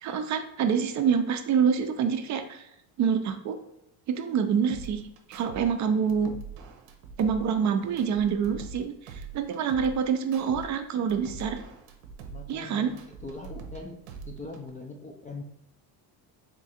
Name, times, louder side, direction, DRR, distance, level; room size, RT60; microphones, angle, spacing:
voice 1, 0.0-2.7 3.0-3.6 4.1-5.0 5.3-6.3 7.2-11.6 12.5-12.9, right 7 dB, 45° right, 7 dB, 0.4 m, -26 dB
sound 1, 4.7-5.7 5.9-8.8 9.1-10.7 10.9-13.8 14.1-14.7, right 5 dB, 85° right, 0.8 m, -43 dB
voice 2, 12.3-12.9 13.2-14.0 14.3-15.4, left 3 dB, 20° left, 2 dB, 0.3 m, -41 dB
3.6 x 2.4 x 4.1 m, 0.87 s
cardioid pair, 115°, 43 cm